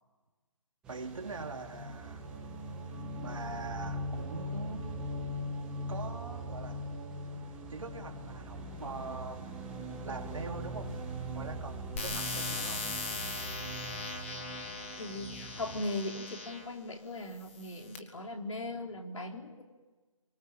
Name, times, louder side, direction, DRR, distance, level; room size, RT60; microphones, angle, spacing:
sound 1, 0.8-15.8, equal, 5° right, 1.9 m, -41 dB
voice 1, 0.9-2.3 3.2-5.0 5.9-6.9 7.7-9.5 10.0-11.0 11.3-12.9, right 4 dB, 65° right, 3 dB, 3.4 m, -43 dB
sound 2, 12.0-16.7 17.4-18.0, left 4 dB, 25° left, 2.3 m, -39 dB
voice 2, 14.9-19.6, left 2 dB, 65° left, 3 dB, 4.0 m, -39 dB
27.5 x 24.5 x 7.3 m, 1.3 s
hypercardioid pair, 175°, 18 cm